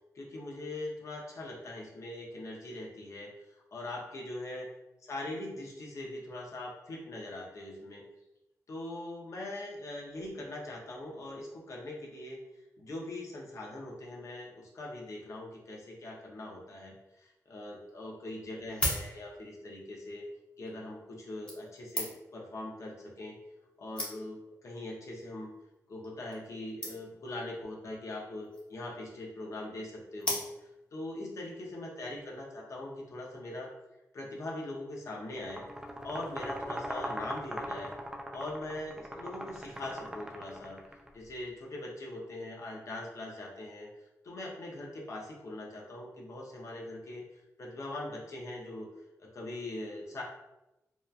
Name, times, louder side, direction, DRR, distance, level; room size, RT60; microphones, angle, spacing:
voice 1, 0.1-3.3 3.7-4.7 5.0-8.0 8.7-12.4 12.8-20.2 20.6-23.4 23.8-25.5 25.9-33.7 34.1-37.9 38.3-40.8 41.1-43.9 44.2-47.2 47.6-48.9 49.2-50.2, left 1 dB, 60° left, -2 dB, 0.6 m, -41 dB
sound 1, 18.5-19.6 20.5-20.7 21.5-22.4 23.3-23.4 23.6-23.7 24.0-24.5 25.2-25.4 25.7-25.8 26.0-26.1 26.3-26.5 26.8-27.3 28.3-28.8 30.2-30.9 31.4-31.5, equal, 20° left, 0.8 m, -37 dB
sound 2, 35.4-41.1, equal, 10° right, 0.3 m, -40 dB
2.8 x 2.2 x 2.4 m, 0.94 s
wide cardioid pair, 100°, 6 cm